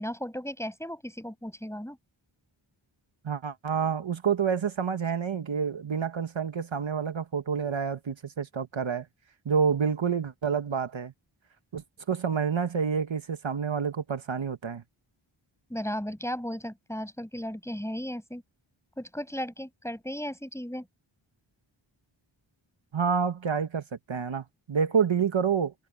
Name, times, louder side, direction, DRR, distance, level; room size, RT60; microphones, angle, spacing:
voice 1, 0.0-2.0 15.7-18.4 19.0-20.9, equal, 5° left, 6.6 m, -35 dB
voice 2, 3.2-9.0 9.4-11.1 11.7-14.8 22.9-25.7, right 6 dB, 70° right, 1.5 m, -28 dB
cardioid pair, 50°, 48 cm